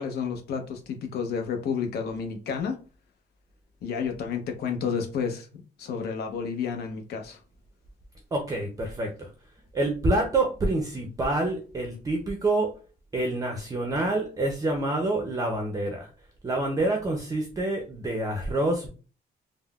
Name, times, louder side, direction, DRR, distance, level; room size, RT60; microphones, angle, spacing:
voice 1, 0.0-2.8 3.8-7.4, left 6 dB, 65° left, 4 dB, 0.7 m, -31 dB
voice 2, 8.3-9.3 9.7-12.7 13.1-16.1 16.4-18.9, right 2 dB, 20° right, 2 dB, 0.5 m, -27 dB
3.5 x 2.0 x 2.3 m, 0.36 s
cardioid pair, 130°, 18 cm